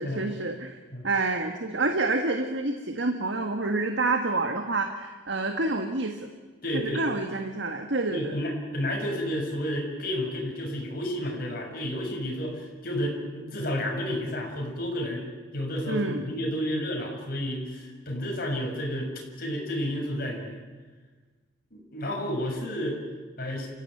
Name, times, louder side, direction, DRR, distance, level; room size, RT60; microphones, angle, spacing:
voice 1, 0.0-0.8 1.0-6.3 6.7-8.4 15.9-16.2, right 3 dB, 65° right, 5 dB, 1.7 m, -28 dB
voice 2, 6.6-7.0 8.1-15.3 15.5-19.1 19.4-20.6 21.9-23.0 23.4-23.7, equal, 50° left, 0 dB, 6.4 m, -31 dB
28.5 x 16.0 x 9.2 m, 1.4 s
head